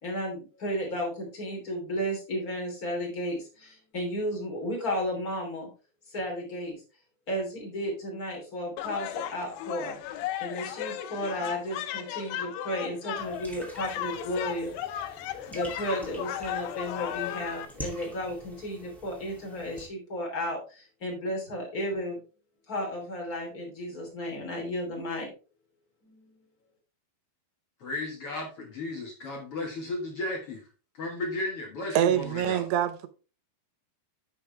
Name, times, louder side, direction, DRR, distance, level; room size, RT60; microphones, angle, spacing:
voice 1, 0.0-5.7 6.1-6.8 7.3-10.0 10.4-14.7 15.5-22.2 22.7-25.3 26.0-26.4, equal, 25° left, 3.0 m, -33 dB
sound 1, 8.8-17.7, left 11 dB, 80° left, 2.7 m, -35 dB
sound 2, 13.2-19.9, equal, ahead, 0.7 m, -46 dB
voice 2, 27.8-30.6 31.0-32.7, left 2 dB, 65° left, 1.4 m, -34 dB
voice 3, 32.0-33.1, right 11 dB, 85° right, 3.1 m, -25 dB
10.5 x 5.7 x 3.3 m
omnidirectional pair, 4.9 m